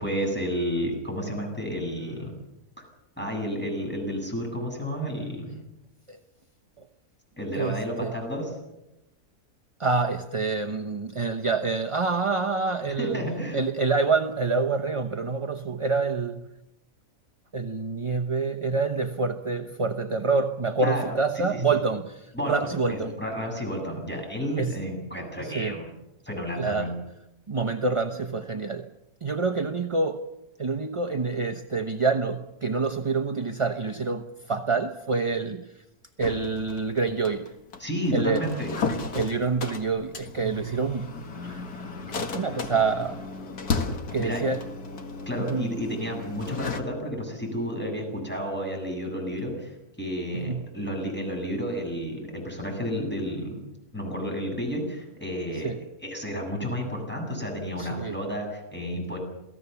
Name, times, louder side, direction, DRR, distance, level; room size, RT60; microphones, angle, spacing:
voice 1, 0.0-2.4 3.2-5.6 7.4-8.6 13.0-13.6 20.8-21.1 21.5-21.8 22.3-25.9 26.2-26.9 37.8-38.7 44.2-44.5 45.3-53.6 53.9-55.7 56.0-59.2, equal, 5° left, 0 dB, 8.0 m, -31 dB
voice 2, 7.5-8.1 9.8-13.2 13.5-16.4 17.5-23.1 24.1-24.2 24.6-24.8 25.4-25.8 26.6-26.9 27.5-28.9 29.2-30.2 30.6-35.7 36.2-37.5 38.1-38.4 39.1-41.6 42.1-43.2 44.1-44.6 45.5-45.7 50.4-50.6 55.5-55.8 57.8-58.2, right 4 dB, 25° right, 5 dB, 0.7 m, -27 dB
sound 1, 36.2-46.8, left 4 dB, 85° left, 2.3 m, -34 dB
28.0 x 18.0 x 7.1 m, 0.92 s
omnidirectional pair, 1.6 m